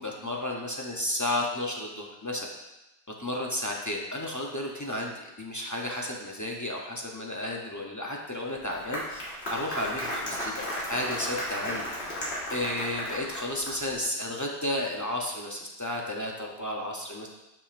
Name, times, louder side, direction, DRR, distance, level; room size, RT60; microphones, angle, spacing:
voice 1, 0.0-2.5 3.2-9.2 9.5-11.9 12.5-17.3, left 1 dB, 25° left, -1 dB, 0.4 m, -32 dB
Applause, 8.5-14.0, equal, 65° left, 1.7 m, -34 dB
6.9 x 5.8 x 2.5 m, 0.98 s
omnidirectional pair, 1.2 m